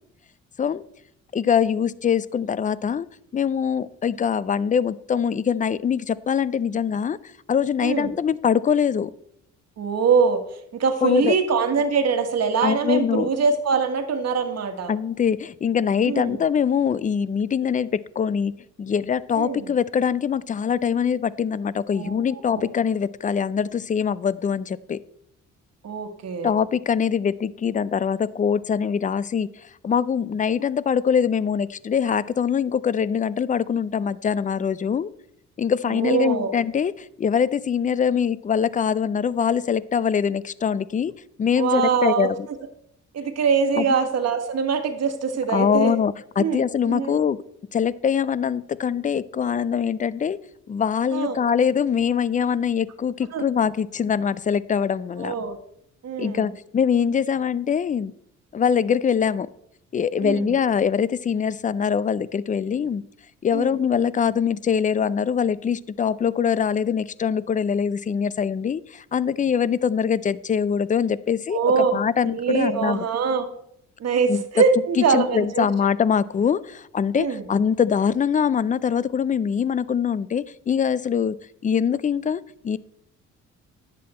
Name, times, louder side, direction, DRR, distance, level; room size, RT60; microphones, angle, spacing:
voice 1, 1.3-3.1 3.3-7.2 7.5-9.1 11.0-11.3 12.6-13.3 14.9-18.5 18.8-25.0 26.4-29.5 29.8-35.1 35.6-42.5 43.8-44.0 45.5-47.4 47.7-50.4 50.7-55.3 56.2-58.1 58.5-59.5 59.9-63.0 63.4-71.6 71.9-73.0 74.3-74.4 75.0-81.4 81.6-82.8, left 7 dB, 25° left, 19 dB, 0.4 m, -23 dB
voice 2, 9.8-10.4 10.7-14.9 16.0-16.4 19.3-19.7 22.0-22.7 25.8-26.5 35.9-36.5 41.6-42.3 43.1-46.0 46.4-47.2 51.1-51.4 53.3-53.4 55.2-55.6 56.0-56.5 60.2-60.5 63.5-63.8 71.5-72.0 72.2-73.5 74.0-75.7 77.1-77.4, right 5 dB, 55° right, 6 dB, 1.6 m, -23 dB
10.5 x 7.6 x 4.3 m, 0.74 s
cardioid pair, 90°, 30 cm